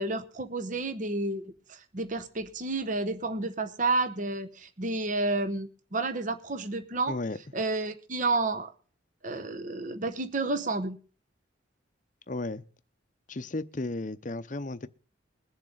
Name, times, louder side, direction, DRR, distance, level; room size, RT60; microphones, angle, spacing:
voice 1, 0.0-1.4 1.7-7.2 7.5-8.7 9.2-11.0, right 3 dB, 40° right, 0.9 m, -30 dB
voice 2, 7.1-7.4 12.3-12.6 13.3-14.9, left 2 dB, 40° left, 0.7 m, -34 dB
22.0 x 7.5 x 3.9 m
head